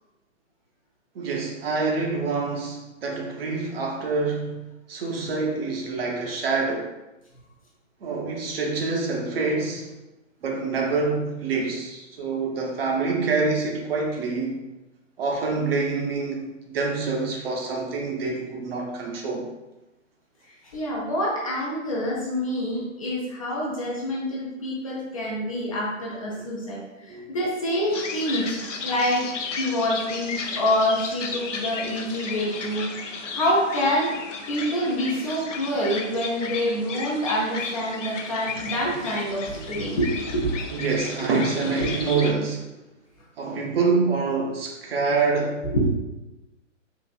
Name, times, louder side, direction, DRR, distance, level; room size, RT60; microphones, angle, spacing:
voice 1, 1.1-4.6 4.9-6.9 8.0-9.9 10.4-14.6 15.2-19.5 27.1-27.3 40.7-42.7 43.4-45.6, right 4 dB, 50° right, 0 dB, 0.7 m, -26 dB
voice 2, 20.7-29.3 29.6-32.9 33.3-34.2 34.5-40.5 41.8-41.9 45.7-45.9, equal, 30° left, -4 dB, 0.4 m, -26 dB
sound 1, 27.9-42.3, left 4 dB, 70° left, 0.6 m, -34 dB
3.9 x 2.5 x 2.3 m, 0.99 s
figure-of-eight pair, 130°, 39 cm